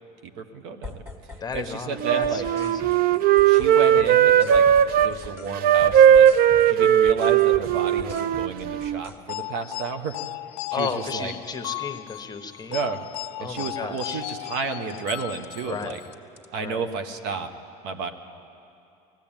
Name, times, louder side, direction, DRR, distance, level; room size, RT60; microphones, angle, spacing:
voice 1, 0.2-1.0 1.5-2.5 3.4-6.3 6.7-10.2 10.7-11.3 12.7-13.0 13.4-16.0 16.5-17.5 17.8-18.1, right 5 dB, 70° right, 7 dB, 1.5 m, -32 dB
sound 1, 0.8-1.7 2.0-5.5 5.8-9.2 14.0-14.3 14.9-15.5 15.8-16.5, left 2 dB, 10° right, 1.9 m, -42 dB
voice 2, 1.4-3.0 10.7-12.9 13.4-14.2 15.6-16.0 16.6-16.9, left 5 dB, 20° left, 7 dB, 1.3 m, -34 dB
Wind instrument woodwind instrument, 2.0-5.1 5.5-9.0, right 9 dB, 55° right, 0.6 m, -18 dB
sound 2, 9.3-16.1, left 20 dB, 70° left, 0.5 m, -36 dB
19.0 x 15.5 x 9.1 m, 2.6 s
supercardioid pair, 105°, 19 cm